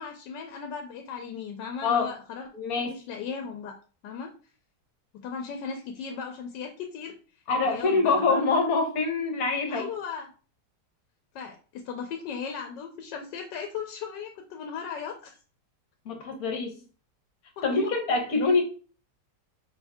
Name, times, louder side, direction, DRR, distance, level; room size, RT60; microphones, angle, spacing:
voice 1, 0.0-2.5 2.8-3.8 4.0-4.3 5.1-7.1 7.6-8.6 9.7-10.3 11.3-15.4 17.6-17.9, left 6 dB, 85° left, 4 dB, 1.3 m, -37 dB
voice 2, 2.5-3.0 7.5-9.9 16.0-16.8 17.6-18.6, left 4 dB, 60° left, 4 dB, 1.4 m, -25 dB
4.7 x 2.6 x 3.5 m, 0.37 s
omnidirectional pair, 1.9 m